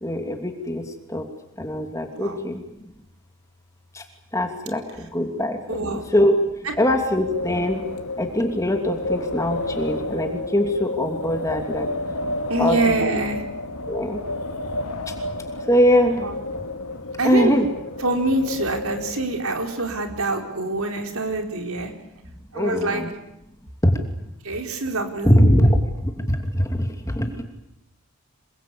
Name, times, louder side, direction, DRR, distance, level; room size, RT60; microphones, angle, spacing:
voice 1, 0.0-0.8 1.1-1.2 1.6-2.6 4.3-4.8 5.1-6.3 6.8-7.8 8.2-11.9 12.6-13.1 13.9-14.2 15.7-16.2 17.2-17.7 22.6-23.1 23.8-23.9 25.2-25.8 26.3-26.4 26.7-26.8 27.2-27.3, equal, 15° left, 4 dB, 2.8 m, -21 dB
voice 2, 5.7-6.1 12.5-13.4 16.2-16.3 17.2-17.5 18.0-21.9 22.5-23.0 24.4-25.4, right 2 dB, 75° right, 3 dB, 4.4 m, -25 dB
Wind, 7.0-19.6, left 1 dB, 85° left, 2.5 m, -31 dB
27.5 x 22.0 x 8.7 m, 0.85 s
head